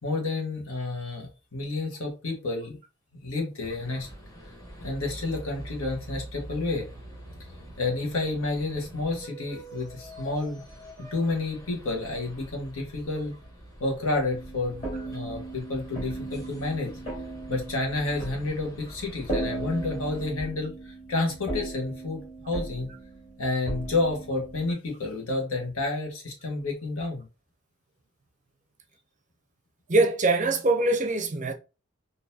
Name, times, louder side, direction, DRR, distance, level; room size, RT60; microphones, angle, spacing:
voice 1, 0.0-2.8 3.2-4.1 4.8-6.9 7.8-10.6 11.0-13.3 13.8-16.9 17.5-22.9 23.4-27.3, left 2 dB, 80° left, 1.3 m, -30 dB
sound 1, 3.6-20.3, right 1 dB, 15° left, 0.9 m, -45 dB
sound 2, 14.3-24.7, right 2 dB, 35° left, 1.9 m, -37 dB
voice 2, 29.9-31.5, right 2 dB, 35° right, 0.5 m, -23 dB
3.8 x 2.7 x 2.7 m
head